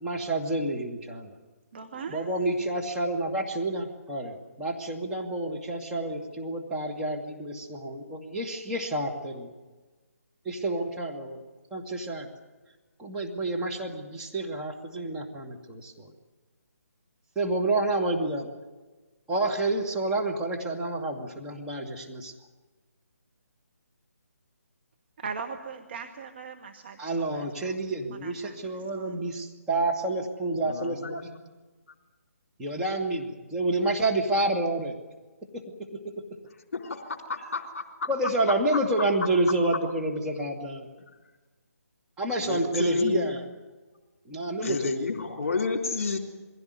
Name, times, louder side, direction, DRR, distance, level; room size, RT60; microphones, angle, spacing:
voice 1, 0.0-1.3 2.1-9.5 10.5-11.4 11.7-12.3 13.0-16.1 17.4-18.5 19.3-22.3 27.0-31.2 32.6-35.0 35.5-35.6 38.1-40.9 42.2-43.4 44.3-45.1, right 2 dB, 10° right, -2 dB, 2.1 m, -29 dB
voice 2, 1.7-2.3 25.2-27.8 28.1-29.3, right 5 dB, 40° right, 5 dB, 1.4 m, -40 dB
voice 3, 30.6-31.3 36.7-37.0 37.3-38.1 38.5-38.8 42.4-43.3 44.6-46.2, left 4 dB, 50° left, 1 dB, 3.6 m, -30 dB
22.5 x 16.5 x 9.6 m, 1.3 s
figure-of-eight pair, 145°, 9 cm